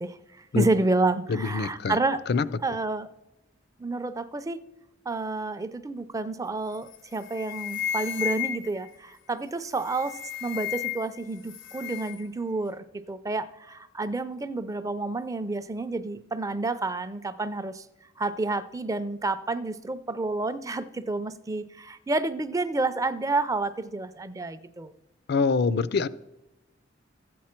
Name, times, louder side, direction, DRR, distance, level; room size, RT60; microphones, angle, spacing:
voice 1, 0.0-2.2 2.6-3.1 3.8-4.6 5.1-17.8 18.2-24.9, right 3 dB, 15° right, 13 dB, 0.4 m, -29 dB
voice 2, 1.3-2.0 2.3-2.5 25.3-26.1, left 4 dB, 55° left, 17 dB, 0.4 m, -24 dB
sound 1, 6.7-7.0 7.2-8.9 9.7-11.2 11.4-12.2, left 11 dB, 80° left, 0.9 m, -33 dB
13.0 x 8.5 x 4.4 m, 0.96 s
head